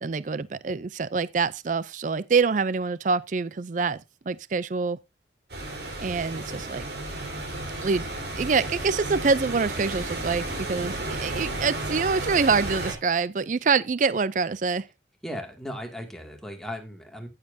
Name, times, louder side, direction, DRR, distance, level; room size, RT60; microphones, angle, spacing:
voice 1, 0.0-4.0 4.3-5.0 6.0-6.8 7.8-8.1 8.4-14.8, right 5 dB, 45° right, 0.4 m, -25 dB
sound 1, 5.5-12.9, right 2 dB, 65° right, 4.2 m, -33 dB
voice 2, 15.2-17.3, equal, 5° left, 2.1 m, -36 dB
15.0 x 7.5 x 2.6 m
head